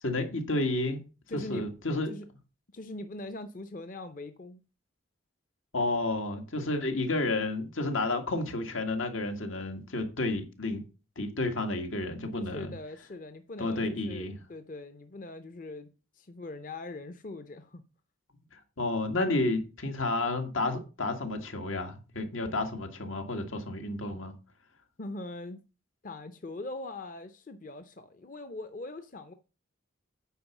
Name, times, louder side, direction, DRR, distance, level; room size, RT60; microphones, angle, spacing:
voice 1, 0.0-1.0 1.3-2.1 5.7-10.8 11.2-12.8 13.6-14.4 18.8-24.3, left 2 dB, 85° left, 1.9 m, -31 dB
voice 2, 1.3-1.7 2.1-2.3 2.7-4.6 12.4-15.9 16.1-17.8 25.0-25.6 26.0-29.3, left 2 dB, 40° left, 0.6 m, -41 dB
9.2 x 4.8 x 7.1 m
head